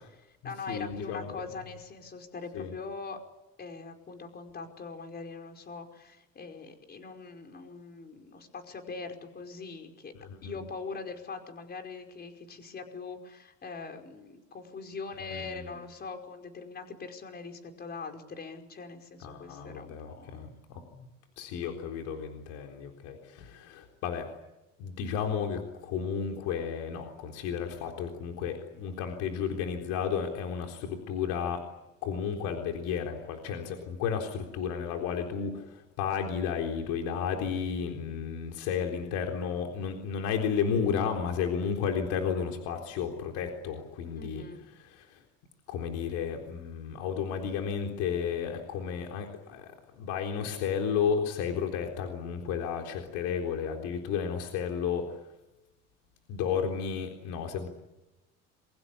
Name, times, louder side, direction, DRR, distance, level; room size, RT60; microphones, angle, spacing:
voice 1, 0.1-3.2 3.6-10.1 10.4-20.5 44.1-44.7, left 4 dB, 35° left, 4 dB, 5.1 m, -42 dB
voice 2, 0.7-1.3 2.5-2.7 10.1-10.6 15.2-15.8 19.2-21.1 21.4-24.3 24.8-31.6 32.0-44.4 44.7-45.2 45.7-55.2 56.3-57.7, left 7 dB, 90° left, 2 dB, 3.9 m, -33 dB
27.5 x 23.5 x 8.4 m, 0.99 s
cardioid pair, 125°, 29 cm